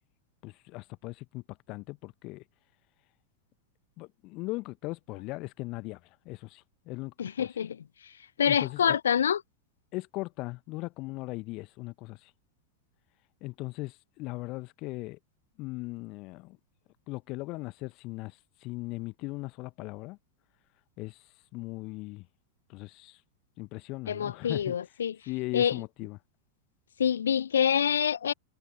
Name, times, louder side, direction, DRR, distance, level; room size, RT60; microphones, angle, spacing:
voice 1, 0.4-2.4 4.0-6.0 6.2-7.5 8.4-9.0 9.9-12.3 13.4-15.2 15.6-16.6 17.1-20.2 21.0-21.2 21.5-22.3 22.7-23.2 23.6-24.8 25.3-26.2, left 22 dB, 40° left, 1.0 m, -38 dB
voice 2, 7.2-7.8 8.4-9.4 24.1-25.1 25.5-25.7 27.0-28.3, left 8 dB, 65° left, 0.5 m, -26 dB
figure-of-eight pair, 90°, 0 cm